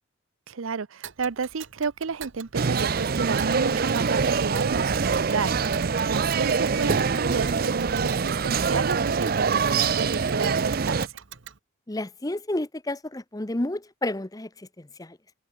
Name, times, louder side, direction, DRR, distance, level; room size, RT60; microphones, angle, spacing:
voice 1, 0.5-11.2, right 5 dB, 85° right, 0.7 m, -31 dB
Tick, 1.0-11.6, right 9 dB, 70° right, 1.1 m, -45 dB
sound 1, 2.5-11.1, right 5 dB, 45° right, 0.5 m, -24 dB
voice 2, 11.9-15.2, left 1 dB, 20° left, 0.8 m, -31 dB
head